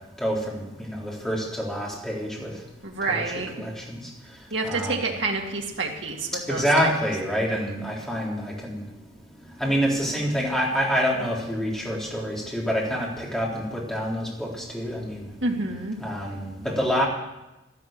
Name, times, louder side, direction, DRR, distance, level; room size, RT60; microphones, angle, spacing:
voice 1, 0.2-2.5 3.0-4.0 4.6-5.0 6.5-8.8 9.6-15.3 16.0-17.1, equal, 5° left, -4 dB, 3.8 m, -27 dB
voice 2, 2.8-3.5 4.5-6.6 15.4-16.0, right 3 dB, 80° right, 0 dB, 2.0 m, -28 dB
12.5 x 12.0 x 7.7 m, 0.99 s
head